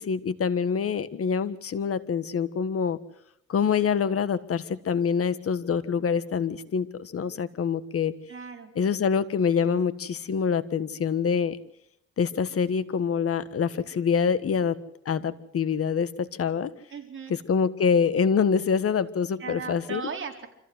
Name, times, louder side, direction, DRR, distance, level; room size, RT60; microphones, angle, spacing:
voice 1, 0.0-3.0 3.5-8.1 8.7-11.6 12.2-14.8 15.0-16.7 17.3-20.0, left 6 dB, 50° left, 13 dB, 1.5 m, -25 dB
voice 2, 8.3-8.7 16.9-17.3 19.4-20.5, right 5 dB, 40° right, 2 dB, 4.4 m, -37 dB
25.5 x 15.0 x 8.0 m, 0.76 s
cardioid pair, 90°, 30 cm